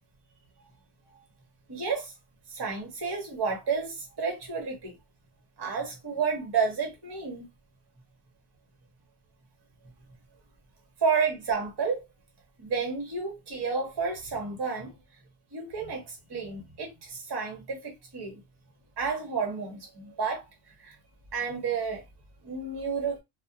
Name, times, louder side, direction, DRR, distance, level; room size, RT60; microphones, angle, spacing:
voice 1, 1.7-2.1 2.5-5.0 5.6-7.5 11.0-12.0 12.6-15.0 15.5-18.4 19.0-21.0 21.3-22.0 22.4-23.2, right 5 dB, 25° right, 0.5 m, -31 dB
2.3 x 2.1 x 2.7 m
omnidirectional pair, 1.4 m